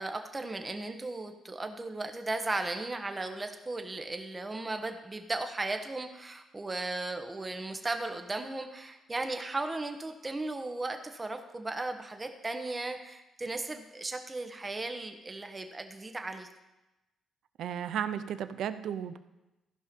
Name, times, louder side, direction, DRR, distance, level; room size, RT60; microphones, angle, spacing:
voice 1, 0.0-16.5, right 2 dB, 20° right, 6 dB, 1.2 m, -36 dB
voice 2, 17.6-19.2, right 9 dB, 75° right, 12 dB, 0.6 m, -34 dB
15.0 x 5.6 x 5.3 m, 1.0 s
cardioid pair, 90°, 0 cm